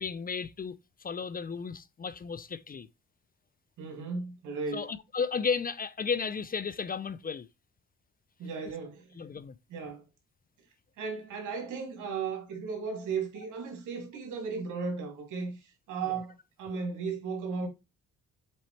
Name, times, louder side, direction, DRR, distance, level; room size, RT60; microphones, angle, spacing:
voice 1, 0.0-2.9 4.7-7.5 9.2-9.5, left 5 dB, 30° left, 0.5 m, -34 dB
voice 2, 3.8-4.9 8.4-9.3 9.7-10.0 11.0-17.7, right 5 dB, 80° right, 2.7 m, -36 dB
7.6 x 4.1 x 3.2 m
cardioid pair, 90°, 30 cm